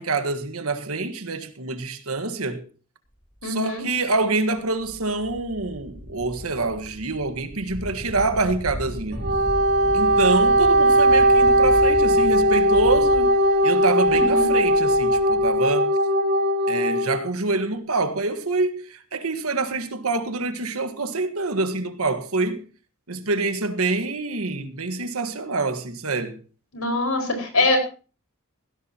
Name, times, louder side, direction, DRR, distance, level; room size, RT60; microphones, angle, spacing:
voice 1, 0.0-2.7 3.4-9.3 9.9-13.4 13.6-16.0 16.7-22.7 23.1-26.4, right 3 dB, 85° right, 1.6 m, -26 dB
voice 2, 3.4-3.9 14.1-14.5 26.7-27.8, left 2 dB, 80° left, 5.1 m, -23 dB
sound 1, 3.4-3.5 4.1-4.2 4.6-15.6, equal, 25° left, 4.0 m, -36 dB
Wind instrument woodwind instrument, 9.1-17.2, equal, 50° right, 2.7 m, -18 dB
16.5 x 16.5 x 3.0 m
head